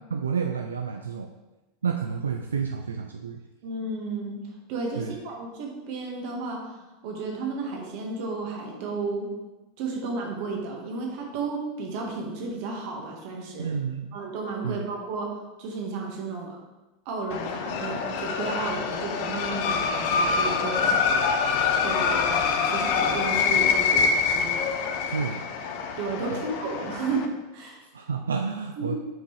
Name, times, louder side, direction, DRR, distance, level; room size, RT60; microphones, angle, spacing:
voice 1, 0.1-1.3 1.8-3.4 5.0-5.2 13.6-14.2 14.6-14.8 25.1-25.5 26.3-26.4 27.9-29.0, right 6 dB, 90° right, 4 dB, 0.3 m, -30 dB
voice 2, 3.6-4.4 4.7-6.6 7.0-9.3 9.8-13.7 14.1-16.6 17.0-21.3 21.8-24.6 26.0-27.2 27.5-27.8 28.8-29.0, right 3 dB, 60° right, 0 dB, 1.6 m, -33 dB
sound 1, 17.3-27.3, left 5 dB, 60° left, 0.7 m, -25 dB
7.7 x 4.4 x 3.3 m, 1.1 s
hypercardioid pair, 95°, 0 cm